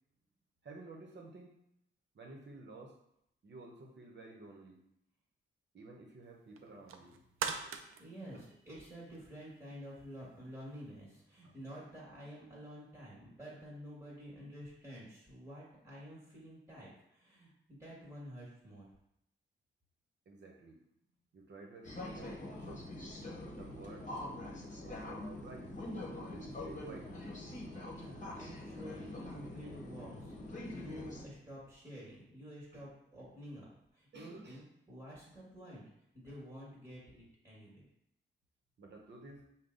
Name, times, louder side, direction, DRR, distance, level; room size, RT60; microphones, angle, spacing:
voice 1, 0.6-1.5 2.1-3.0 3.4-4.8 5.7-7.3 8.3-8.4 11.4-11.5 20.3-20.8 21.3-22.9 23.4-24.1 24.7-25.7 26.0-27.3 32.7-32.8 34.1-34.6 36.3-36.4 38.8-39.4, right 2 dB, 55° right, 0 dB, 1.0 m, -52 dB
sound 1, 6.6-9.3 9.7-9.8, right 6 dB, 85° right, 0.4 m, -41 dB
voice 2, 8.0-8.4 8.6-18.9 27.9-35.8 36.1-37.8, equal, 15° right, -6 dB, 1.7 m, -50 dB
sound 2, 21.8-31.2, left 1 dB, 35° left, 1.1 m, -44 dB
5.3 x 2.3 x 3.9 m, 0.78 s
cardioid pair, 80°, 21 cm